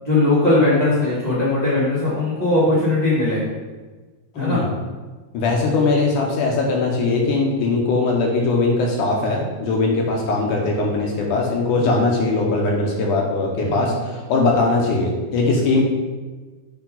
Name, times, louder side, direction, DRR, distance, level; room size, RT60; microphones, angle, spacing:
voice 1, 0.0-3.4 4.4-4.6 11.8-12.0 13.6-13.8, left 2 dB, 70° right, -8 dB, 0.4 m, -19 dB
voice 2, 4.4-4.7 5.3-15.8, left 3 dB, 70° left, 0 dB, 2.1 m, -20 dB
7.1 x 5.0 x 3.9 m, 1.3 s
omnidirectional pair, 4.3 m